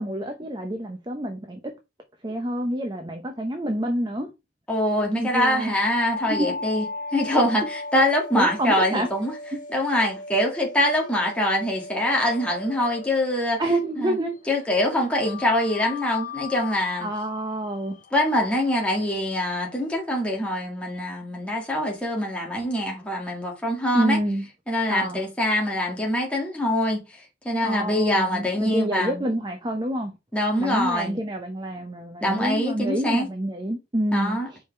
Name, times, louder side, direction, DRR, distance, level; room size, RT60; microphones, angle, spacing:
voice 1, 0.0-1.7 2.2-4.3 5.2-5.8 6.2-6.6 8.3-9.1 13.6-14.4 17.0-18.0 23.9-24.4 24.9-25.2 27.6-30.1 30.6-34.6, right 1 dB, 25° right, 0.8 m, -27 dB
voice 2, 4.7-6.8 7.1-9.3 9.7-13.6 14.0-14.2 14.5-17.1 18.1-24.2 24.7-27.0 27.4-29.2 30.3-31.2 32.2-33.3 34.1-34.5, left 1 dB, 5° left, 1.7 m, -24 dB
sound 1, 5.5-14.3 15.2-19.9, left 3 dB, 45° left, 1.2 m, -37 dB
5.1 x 5.0 x 4.5 m
head